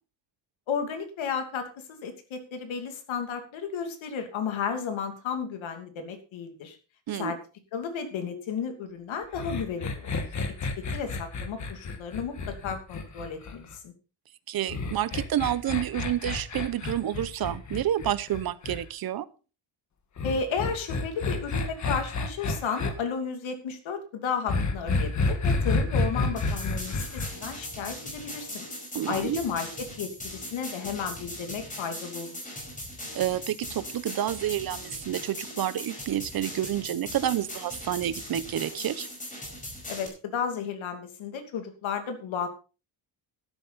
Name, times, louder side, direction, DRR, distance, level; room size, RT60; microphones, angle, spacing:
voice 1, 0.7-6.8 7.1-7.4 7.7-10.1 10.8-13.9 20.2-28.7 29.1-32.5 39.9-42.5, left 6 dB, 75° left, 7 dB, 2.8 m, -33 dB
sound 1, 9.3-13.8 14.7-18.8 20.2-22.9 24.5-27.3, left 3 dB, 35° left, 1.7 m, -29 dB
voice 2, 14.5-19.3 28.9-29.4 33.1-39.1, right 11 dB, 50° right, 16 dB, 0.9 m, -29 dB
sound 2, 26.4-40.1, left 1 dB, 15° left, 5.1 m, -39 dB
12.5 x 12.0 x 4.2 m, 0.34 s
cardioid pair, 175°, 48 cm